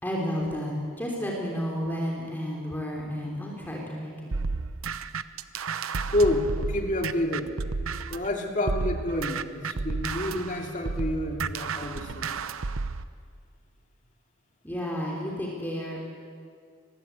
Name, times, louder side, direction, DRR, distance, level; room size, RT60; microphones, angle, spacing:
voice 1, 0.0-4.3 14.6-16.0, equal, 10° left, -2 dB, 3.4 m, -31 dB
sound 1, 4.3-8.3 8.7-13.0, right 4 dB, 80° right, 0.8 m, -32 dB
voice 2, 6.1-7.5 8.1-12.3, left 1 dB, 35° left, 2 dB, 2.7 m, -28 dB
25.0 x 20.0 x 8.2 m, 2.2 s
head